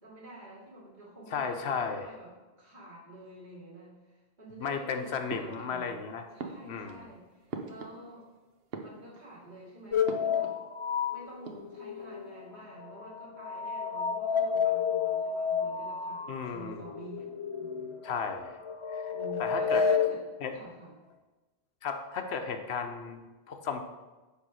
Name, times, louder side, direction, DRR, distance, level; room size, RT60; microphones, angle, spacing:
voice 1, 0.0-2.3 2.6-6.0 6.3-8.3 8.8-10.5 11.1-17.3 17.6-18.0 19.1-20.2 20.5-20.9, right 2 dB, 45° right, -7 dB, 3.0 m, -48 dB
voice 2, 1.3-2.1 4.6-6.3 6.6-7.1 16.3-16.8 18.0-18.6 18.9-19.1 19.4-19.8 20.4-20.6 21.8-23.8, left 6 dB, 75° left, 6 dB, 1.1 m, -34 dB
sound 1, 5.3-6.0 6.4-8.3 8.6-9.5 10.1-10.7 10.9-11.0 11.3-12.0, right 4 dB, 65° right, 1.0 m, -43 dB
sound 2, 9.9-12.5 12.8-20.1, left 6 dB, 45° left, 0.4 m, -31 dB
9.6 x 3.6 x 6.3 m, 1.2 s
omnidirectional pair, 1.1 m